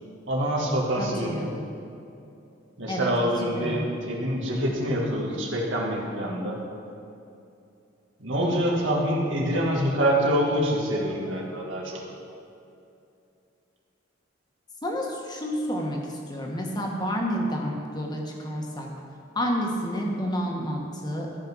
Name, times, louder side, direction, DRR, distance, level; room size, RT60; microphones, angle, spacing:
voice 1, 0.3-1.3 2.8-6.6 8.2-12.0, equal, 70° right, -2 dB, 2.0 m, -26 dB
voice 2, 1.0-1.6 2.9-3.9 14.8-18.9 19.3-21.3, equal, 20° left, 0 dB, 1.4 m, -30 dB
14.0 x 5.7 x 6.2 m, 2.7 s
head